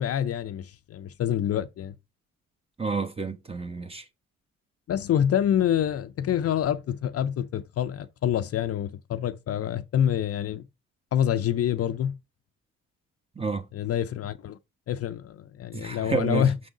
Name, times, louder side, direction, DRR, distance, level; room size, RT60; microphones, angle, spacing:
voice 1, 0.0-1.9 4.9-10.6 11.1-12.2 13.7-14.6 14.9-16.5, left 10 dB, 50° left, 0.5 m, -26 dB
voice 2, 2.8-4.0 13.4-13.6 15.7-16.5, right 4 dB, 20° right, 1.1 m, -29 dB
6.2 x 3.7 x 5.0 m
cardioid pair, 90°, 30 cm